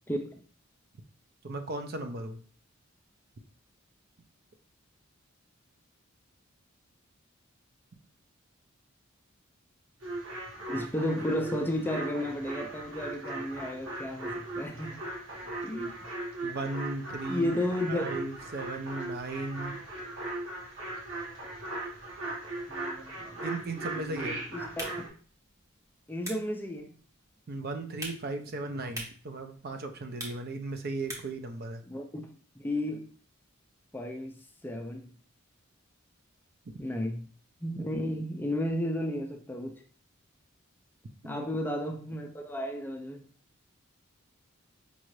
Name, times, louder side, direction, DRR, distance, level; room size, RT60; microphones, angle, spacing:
voice 1, 0.1-0.4 10.7-15.0 15.6-16.0 17.3-18.1 22.7-23.3 23.7-24.9 26.1-26.9 31.9-33.1 33.9-35.1 36.8-37.2 37.6-39.8 41.2-43.2, left 1 dB, 10° left, 0.4 m, -33 dB
voice 2, 1.4-2.4 15.4-15.5 16.4-17.5 17.9-19.8 23.4-24.4 27.5-31.8 41.2-41.5, right 2 dB, 50° right, 0.5 m, -36 dB
sound 1, 10.0-25.1, right 2 dB, 75° right, 1.4 m, -38 dB
sound 2, 24.6-31.5, equal, 15° right, 1.0 m, -46 dB
5.3 x 2.5 x 3.1 m
head